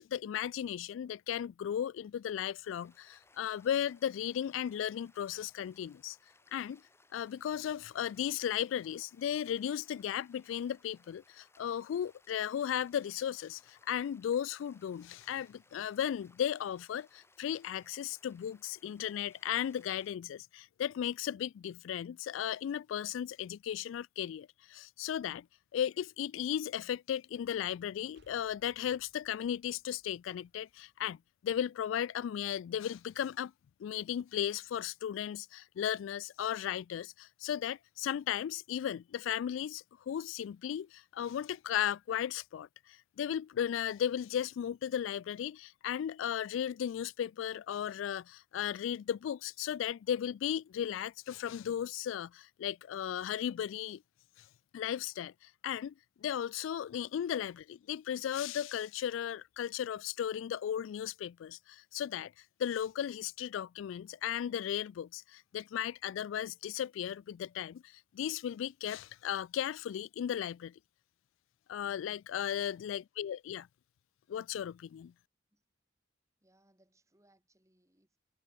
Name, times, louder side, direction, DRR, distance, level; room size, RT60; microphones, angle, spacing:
voice 1, 0.0-6.2 6.5-6.8 7.1-25.5 25.7-31.2 31.4-33.5 33.8-54.0 54.7-55.9 56.2-62.3 62.6-70.7 71.7-73.7 74.3-75.1, left 9 dB, 90° left, 0.3 m, -36 dB
sound 1, 2.6-20.1, left 2 dB, 15° left, 6.4 m, -66 dB
sound 2, 28.1-31.6, right 1 dB, 60° right, 5.9 m, -71 dB
voice 2, 72.5-72.9 75.5-75.6 76.4-78.2, right 1 dB, 15° right, 3.6 m, -70 dB
head